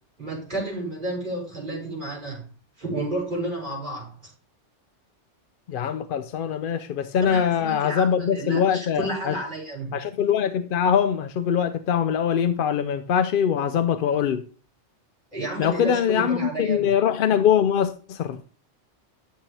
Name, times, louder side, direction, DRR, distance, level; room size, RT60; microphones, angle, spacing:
voice 1, 0.2-2.5 2.8-4.3 7.1-10.0 15.3-16.9, right 1 dB, 45° right, 5.7 m, -31 dB
voice 2, 5.7-9.3 9.9-14.5 15.6-18.4, left 8 dB, 60° left, 0.6 m, -23 dB
11.5 x 7.3 x 3.3 m
omnidirectional pair, 1.2 m